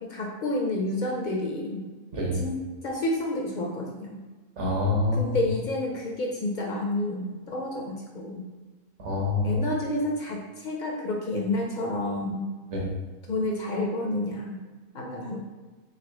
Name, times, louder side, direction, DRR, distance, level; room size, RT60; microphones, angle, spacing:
voice 1, 0.0-1.8 2.3-4.2 5.2-8.5 9.4-12.5 13.3-14.6 14.9-15.4, left 1 dB, 65° left, 0 dB, 0.4 m, -30 dB
voice 2, 2.1-2.4 4.6-5.4 9.0-9.7 12.7-12.9, left 2 dB, 60° right, -1 dB, 1.2 m, -26 dB
3.7 x 3.3 x 3.3 m, 1.3 s
omnidirectional pair, 1.4 m